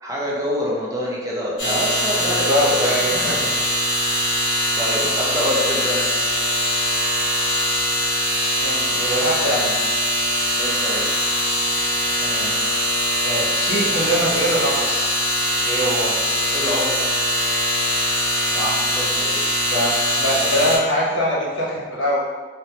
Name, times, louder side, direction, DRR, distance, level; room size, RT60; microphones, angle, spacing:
voice 1, 0.0-3.3 4.7-6.2 10.6-11.1 16.5-17.2 18.8-19.4, equal, 15° right, -4 dB, 0.4 m, -26 dB
sound 1, 1.6-20.8, equal, 25° left, 1.0 m, -22 dB
voice 2, 2.2-3.4 8.6-9.7 12.2-12.5 13.2-15.1 15.6-16.1 18.5-18.9 19.6-22.2, equal, 70° left, -5 dB, 0.8 m, -23 dB
2.9 x 2.0 x 2.7 m, 1.4 s
head